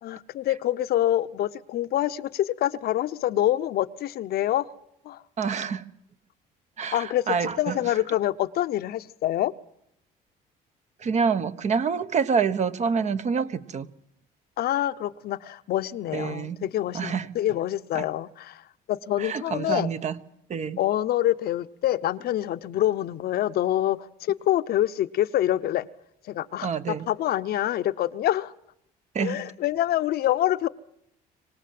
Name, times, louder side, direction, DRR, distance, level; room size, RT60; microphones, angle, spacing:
voice 1, 0.0-4.7 5.0-5.2 6.9-9.5 14.6-18.6 18.9-19.9 20.8-25.9 26.3-28.5 29.2-30.7, left 13 dB, 65° left, 0.9 m, -26 dB
voice 2, 5.4-5.8 6.8-7.8 11.0-13.9 16.1-16.6 16.9-17.3 19.2-20.2 20.5-20.8 26.6-27.1 29.1-29.4, right 6 dB, 45° right, 1.2 m, -27 dB
25.0 x 18.0 x 7.7 m
cardioid pair, 110°, 17 cm